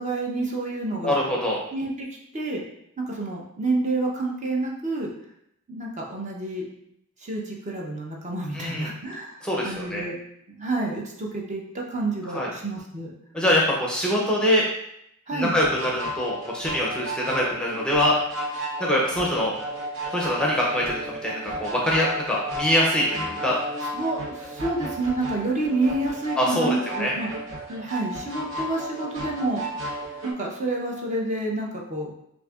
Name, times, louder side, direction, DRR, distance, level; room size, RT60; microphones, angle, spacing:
voice 1, 0.0-1.2 1.7-2.1 2.3-2.6 3.0-5.1 5.7-6.6 7.2-10.2 10.6-13.1 15.3-15.6 23.9-27.3 27.7-30.0 30.2-32.1, right 2 dB, 35° right, -2 dB, 0.7 m, -29 dB
voice 2, 1.0-1.6 8.5-8.9 9.4-10.0 12.3-12.5 13.3-14.6 15.3-18.5 18.8-19.5 20.1-23.6 26.4-27.1, left 1 dB, 5° left, -3 dB, 0.6 m, -24 dB
sound 1, 15.6-30.3, right 1 dB, 65° right, 0.9 m, -34 dB
6.3 x 2.6 x 2.4 m, 0.75 s
head